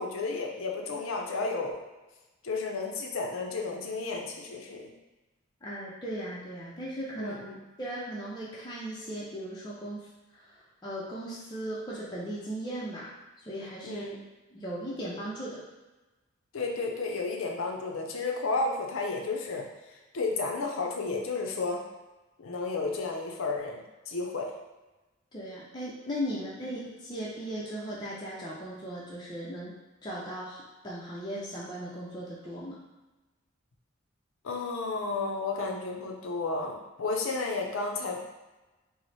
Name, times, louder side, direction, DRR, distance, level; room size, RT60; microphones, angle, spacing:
voice 1, 0.0-1.7 2.4-4.9 7.2-7.6 13.8-14.1 16.5-21.8 22.4-24.5 34.4-38.2, left 3 dB, 80° left, 1 dB, 0.5 m, -32 dB
voice 2, 5.6-7.4 7.8-13.1 13.4-14.0 14.5-15.7 25.3-29.8 30.0-32.8, equal, 20° left, -6 dB, 0.5 m, -37 dB
3.0 x 2.0 x 4.0 m, 1.1 s
head